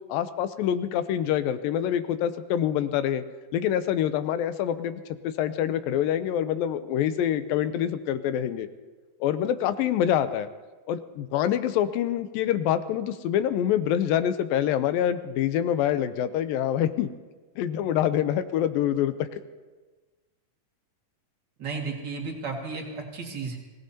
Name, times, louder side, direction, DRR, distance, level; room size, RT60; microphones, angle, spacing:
voice 1, 0.1-3.2 3.5-5.0 5.4-8.7 9.2-10.5 10.9-17.1 17.6-19.4, left 10 dB, 80° left, 11 dB, 2.4 m, -26 dB
voice 2, 21.6-23.6, right 4 dB, 35° right, 0 dB, 2.2 m, -33 dB
24.5 x 17.5 x 2.8 m, 1.3 s
omnidirectional pair, 4.1 m